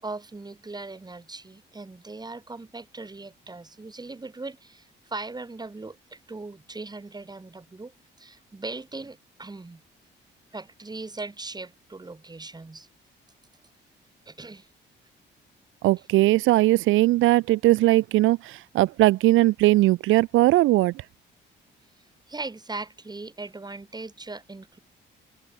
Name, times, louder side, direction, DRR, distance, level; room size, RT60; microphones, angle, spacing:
voice 1, 0.0-9.8 10.5-12.9 14.3-14.7 22.0-24.8, right 3 dB, 20° right, 4.9 m, -39 dB
voice 2, 15.8-20.9, right 17 dB, 85° right, 0.5 m, -19 dB
open air
cardioid pair, 90°, 20 cm